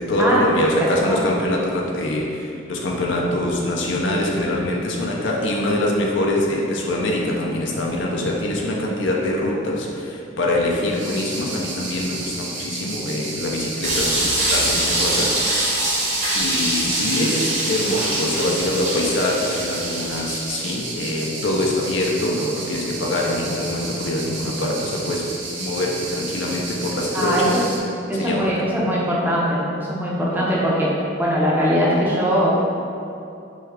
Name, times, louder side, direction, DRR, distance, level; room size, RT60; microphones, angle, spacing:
voice 1, 0.0-15.8 16.3-25.3 25.6-27.6 28.2-28.5, left 1 dB, 65° left, -2 dB, 0.5 m, -24 dB
sound 1, 10.9-27.8, right 3 dB, 65° right, 0.7 m, -32 dB
sound 2, 13.8-20.7, right 1 dB, 40° right, 1.0 m, -23 dB
voice 2, 27.1-27.6 28.1-30.9 31.2-32.5, equal, 10° right, -6 dB, 0.7 m, -21 dB
6.2 x 2.3 x 3.5 m, 2.7 s
head